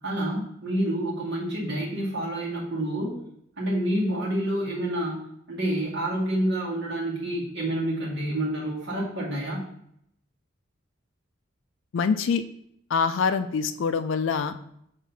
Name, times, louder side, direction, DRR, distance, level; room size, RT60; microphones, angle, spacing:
voice 1, 0.0-3.2 3.6-5.2 5.5-9.6, right 1 dB, 55° right, -5 dB, 2.1 m, -28 dB
voice 2, 11.9-12.4 12.9-14.5, left 5 dB, 65° left, 10 dB, 0.3 m, -24 dB
7.0 x 3.6 x 4.0 m, 0.73 s
head